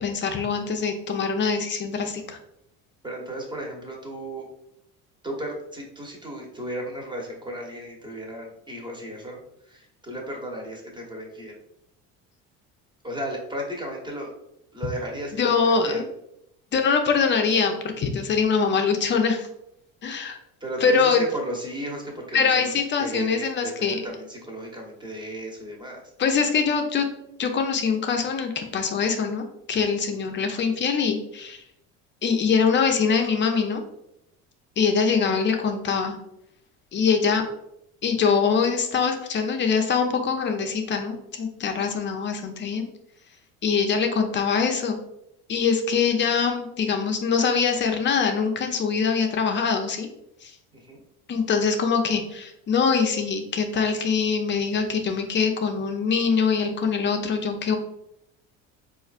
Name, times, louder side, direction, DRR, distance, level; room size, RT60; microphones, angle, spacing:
voice 1, 0.0-2.4 15.3-16.0 16.7-19.5 20.0-20.4 20.8-21.2 22.3-24.0 26.2-27.1 27.4-31.6 32.2-33.8 34.8-36.2 36.9-37.4 38.0-42.9 43.6-45.0 45.5-50.1 50.4-50.5 51.3-57.8, left 5 dB, 35° left, 5 dB, 0.5 m, -23 dB
voice 2, 3.0-4.5 5.2-9.4 9.6-11.6 13.0-14.3 14.7-16.0 20.6-26.1 50.7-51.0, right 1 dB, 15° right, -1 dB, 1.0 m, -35 dB
4.1 x 2.5 x 2.4 m, 0.80 s
supercardioid pair, 95°, 33 cm